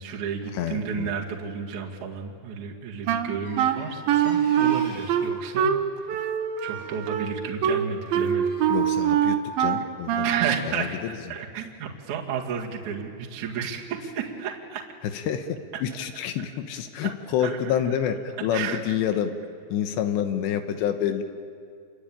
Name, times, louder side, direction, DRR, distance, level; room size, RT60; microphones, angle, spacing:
voice 1, 0.0-5.7 6.0-6.1 6.6-8.5 10.2-14.9 17.0-17.1 17.4-17.8 18.5-18.9, right 7 dB, 50° right, -1 dB, 3.2 m, -32 dB
voice 2, 0.5-1.1 8.7-10.3 10.7-11.1 15.1-19.3 19.7-21.2, left 9 dB, 80° left, 7 dB, 3.3 m, -28 dB
Wind instrument woodwind instrument, 3.1-10.6, right 9 dB, 70° right, 2.7 m, -24 dB
sound 1, 3.4-5.3 6.7-7.1 7.7-8.7, left 1 dB, 40° left, 5.8 m, -47 dB
28.5 x 23.0 x 8.9 m, 2.3 s
omnidirectional pair, 4.9 m